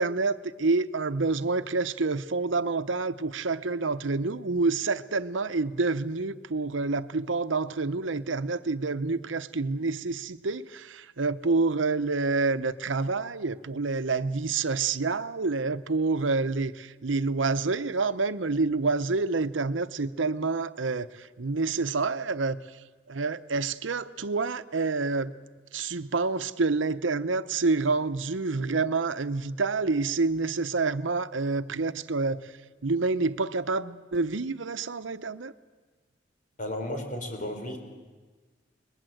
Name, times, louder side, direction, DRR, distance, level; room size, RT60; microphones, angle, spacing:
voice 1, 0.0-22.6 23.1-25.3 25.7-32.5 32.8-35.5, right 3 dB, 90° right, 0.9 m, -28 dB
voice 2, 36.6-37.8, left 1 dB, 45° left, 4.9 m, -33 dB
29.5 x 21.5 x 7.9 m
head